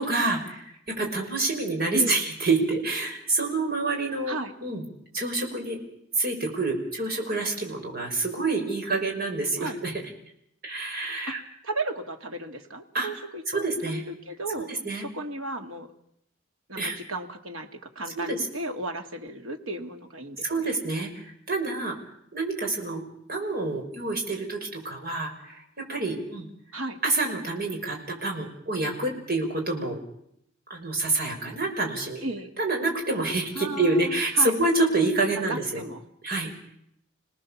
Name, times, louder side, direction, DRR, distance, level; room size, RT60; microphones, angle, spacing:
voice 1, 0.0-4.8 5.1-5.8 6.2-9.9 10.6-11.4 12.9-13.1 13.5-14.0 14.8-15.0 16.8-17.0 18.1-18.4 20.4-22.0 22.3-23.0 23.3-26.5 27.0-30.0 30.7-32.2 32.6-35.8 36.2-36.5, right 3 dB, 50° right, 2 dB, 5.6 m, -27 dB
voice 2, 1.9-2.2 4.3-4.6 9.6-9.8 11.3-15.9 16.7-20.8 26.7-27.0 32.2-32.5 33.5-34.6 35.4-36.1, right 2 dB, 85° right, 5 dB, 2.3 m, -35 dB
28.5 x 18.5 x 7.3 m, 0.74 s
head